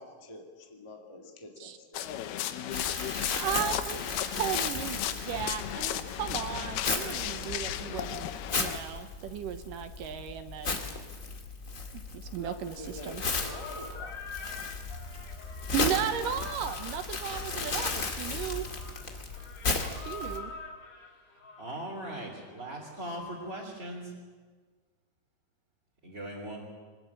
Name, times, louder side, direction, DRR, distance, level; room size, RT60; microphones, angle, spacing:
voice 1, 0.0-2.4 12.0-14.2 14.6-14.7, left 2 dB, 20° left, 2 dB, 0.8 m, -47 dB
sound 1, 1.9-8.8, left 11 dB, 90° left, 3.0 m, -35 dB
Crumpling crinkling, 2.7-20.4, left 3 dB, 35° left, 1.4 m, -35 dB
voice 2, 3.4-10.7 12.1-12.8 13.0-13.2 15.7-18.6 19.9-20.5, right 9 dB, 75° right, 9 dB, 2.3 m, -35 dB
sound 2, 13.4-22.8, left 3 dB, 60° left, 5.9 m, -46 dB
voice 3, 21.6-24.1 26.0-26.6, right 1 dB, 20° right, -4 dB, 3.3 m, -39 dB
24.0 x 20.5 x 8.7 m, 1.5 s
omnidirectional pair, 4.4 m